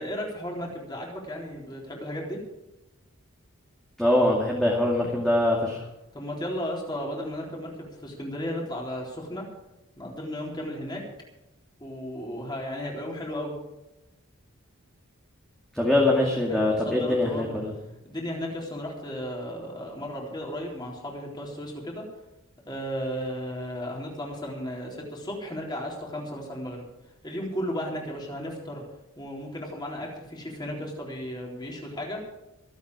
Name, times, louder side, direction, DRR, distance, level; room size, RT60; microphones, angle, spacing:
voice 1, 0.0-2.4 6.1-9.4 10.0-11.0 11.8-13.5 16.2-17.5 18.0-22.0 22.7-26.8 27.2-28.8 29.2-32.2, equal, 20° left, -1 dB, 3.9 m, -34 dB
voice 2, 4.0-5.8 15.7-17.7, left 1 dB, ahead, -3 dB, 2.2 m, -23 dB
25.5 x 8.6 x 4.9 m, 0.96 s
head